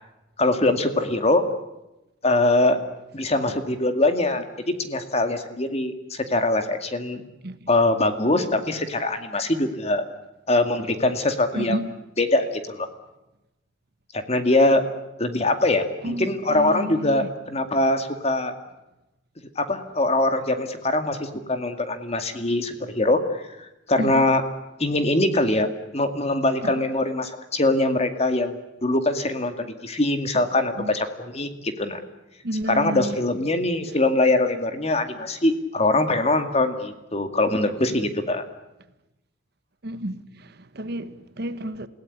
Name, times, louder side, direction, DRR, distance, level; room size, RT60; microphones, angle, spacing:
voice 1, 0.4-1.4 2.2-2.8 3.1-7.2 7.7-10.0 10.5-11.8 12.2-12.9 14.1-14.8 15.2-18.5 19.6-24.4 24.8-25.7 25.9-32.0 32.7-38.4, left 2 dB, 35° left, 2.2 m, -23 dB
voice 2, 11.5-11.9 16.0-17.3 24.0-24.3 26.6-26.9 30.8-30.9 32.4-33.2 39.8-41.9, right 1 dB, 60° right, 1.3 m, -31 dB
28.5 x 17.5 x 10.0 m
head